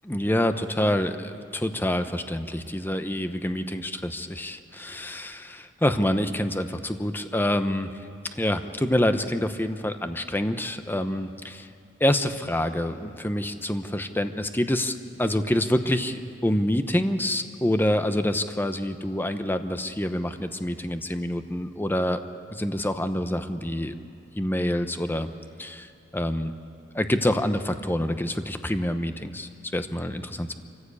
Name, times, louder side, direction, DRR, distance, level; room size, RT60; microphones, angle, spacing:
voice 1, 0.0-7.9 8.3-11.7 12.0-14.9 15.2-22.2 22.5-24.0 24.4-25.3 25.6-26.5 26.9-30.5, left 1 dB, 10° left, 9 dB, 0.9 m, -27 dB
25.5 x 15.0 x 8.4 m, 2.7 s
head